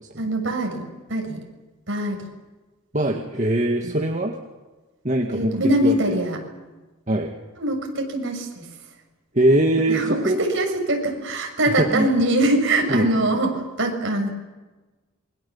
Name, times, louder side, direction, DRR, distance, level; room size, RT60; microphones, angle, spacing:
voice 1, 0.2-1.4 1.9-2.2 3.8-4.0 5.3-6.4 7.6-8.7 9.9-14.3, right 1 dB, 55° right, 2 dB, 6.5 m, -23 dB
voice 2, 2.9-4.4 5.0-5.6 5.8-6.2 7.1-7.3 9.3-10.4 11.8-12.1 12.9-13.1, right 1 dB, 35° right, 1 dB, 2.0 m, -21 dB
27.5 x 23.5 x 7.3 m, 1.2 s
head